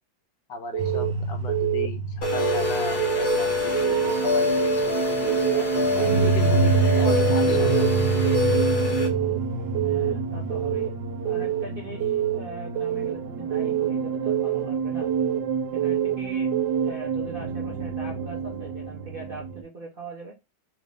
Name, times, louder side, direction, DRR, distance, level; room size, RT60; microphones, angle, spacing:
voice 1, 0.5-5.9 6.2-8.1, left 4 dB, 75° left, 5 dB, 1.3 m, -36 dB
Keyboard (musical) / Alarm, 0.7-1.1 1.5-1.9 2.2-2.6 3.0-3.4 3.7-4.1 4.5-4.9 5.2-5.6 6.0-6.4 6.7-7.1 7.5-7.9 8.2-8.6 9.0-9.4 9.8-10.1 10.5-10.9 11.3-11.6 12.0-12.4 12.8-13.1 13.5-13.9 14.3-14.6 15.0-15.4 15.8-16.2 16.5-16.9, right 13 dB, 90° right, 1.4 m, -26 dB
sound 1, 0.8-19.6, right 4 dB, 70° right, 1.2 m, -27 dB
sound 2, 2.2-9.1, left 3 dB, 60° left, 1.3 m, -25 dB
voice 2, 9.8-10.9 11.2-15.1 15.7-16.5 16.8-20.3, right 3 dB, 50° right, -2 dB, 0.6 m, -41 dB
3.5 x 2.6 x 3.3 m, 0.23 s
omnidirectional pair, 2.0 m